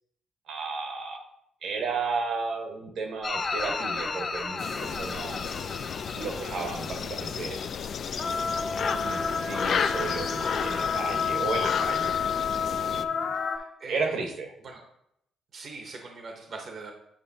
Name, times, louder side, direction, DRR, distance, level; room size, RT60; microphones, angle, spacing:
voice 1, 0.5-1.2 1.6-5.9 6.2-7.7 8.9-12.1 12.9-13.3 13.9-14.5, right 4 dB, 70° right, 4 dB, 1.1 m, -33 dB
sound 1, 3.2-7.8 8.1-13.6, left 5 dB, 40° left, 1.2 m, -31 dB
sound 2, 4.6-13.0, left 7 dB, 60° left, 0.3 m, -32 dB
voice 2, 13.3-14.2 14.6-14.8 15.5-16.9, right 3 dB, 55° right, 2 dB, 0.8 m, -42 dB
8.6 x 5.2 x 2.8 m, 0.78 s
cardioid pair, 90°, 0 cm